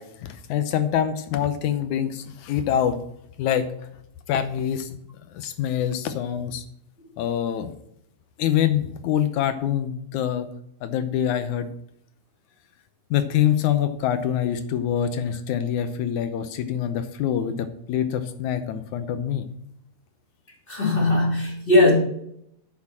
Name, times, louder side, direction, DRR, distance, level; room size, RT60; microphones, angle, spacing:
voice 1, 0.0-3.0 3.4-3.7 4.3-4.9 5.3-6.7 7.2-7.7 8.4-10.5 10.8-11.7 13.1-19.5, left 9 dB, 75° left, 10 dB, 1.9 m, -25 dB
voice 2, 20.7-21.9, left 2 dB, 15° left, -3 dB, 3.2 m, -19 dB
9.5 x 6.7 x 7.4 m, 0.73 s
omnidirectional pair, 4.0 m